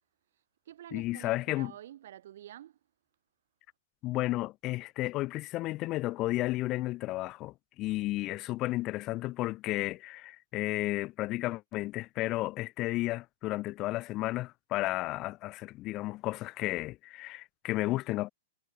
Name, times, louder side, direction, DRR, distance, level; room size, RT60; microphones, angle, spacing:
voice 1, 0.3-2.8, right 12 dB, 60° right, 5.2 m, -49 dB
voice 2, 0.9-1.7 4.0-18.3, left 18 dB, 25° left, 1.2 m, -33 dB
hypercardioid pair, 160°, 0 cm